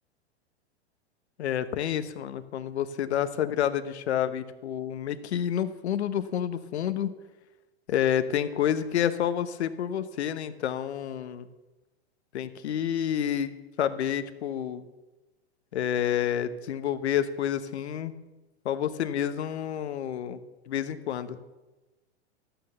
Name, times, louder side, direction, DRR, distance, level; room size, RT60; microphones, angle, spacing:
voice 1, 1.4-7.1 7.9-11.5 12.3-14.9 15.7-18.1 18.6-20.4 20.7-21.4, left 10 dB, 75° left, 11 dB, 1.2 m, -29 dB
13.0 x 9.2 x 7.0 m, 1.1 s
hypercardioid pair, 115°, 33 cm